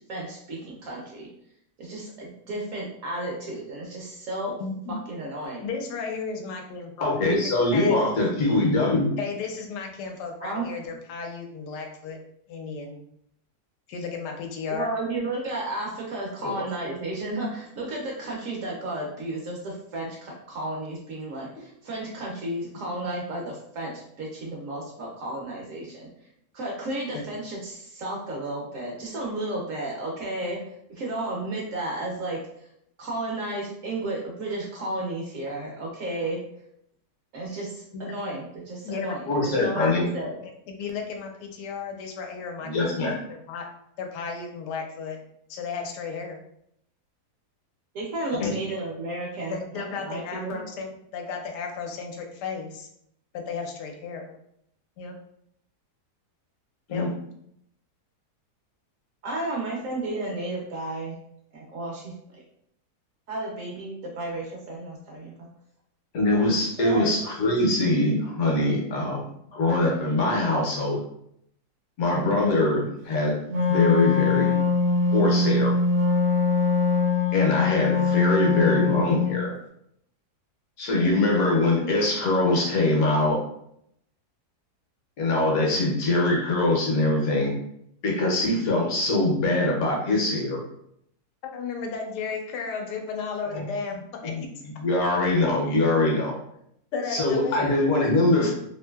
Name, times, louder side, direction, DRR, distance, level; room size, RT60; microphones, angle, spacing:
voice 1, 0.1-1.3 1.8-4.5 4.9-5.7 10.4-10.7 14.7-26.1 26.5-30.6 30.9-32.4 33.0-36.4 37.3-39.3 39.6-40.4 47.9-50.6 59.2-61.1 61.5-62.4 63.3-65.5 66.8-67.1, right 2 dB, 65° right, -2 dB, 0.9 m, -33 dB
voice 2, 4.6-5.0 5.6-7.2 7.7-8.0 9.2-12.2 12.5-13.0 13.9-14.9 27.1-27.2 37.9-38.0 38.8-39.9 40.7-43.7 44.0-45.2 45.5-46.4 48.3-48.6 49.5-52.9 53.3-54.3 55.0-55.1 56.9-57.1 91.4-94.5 96.9-97.8, left 5 dB, 85° left, 3 dB, 1.2 m, -34 dB
voice 3, 7.0-9.1 16.4-16.5 39.3-40.0 42.6-43.1 48.4-48.5 56.9-57.1 66.1-69.2 69.5-71.0 72.0-73.4 73.7-74.6 75.1-75.8 77.3-79.6 80.8-83.4 85.2-87.5 88.0-90.6 93.5-93.7 94.2-94.5 94.8-96.4 97.1-98.5, left 2 dB, 65° left, -1 dB, 1.1 m, -23 dB
Wind instrument woodwind instrument, 73.5-79.4, left 4 dB, 85° right, 1.2 m, -22 dB
3.0 x 2.6 x 2.2 m, 0.73 s
omnidirectional pair, 1.7 m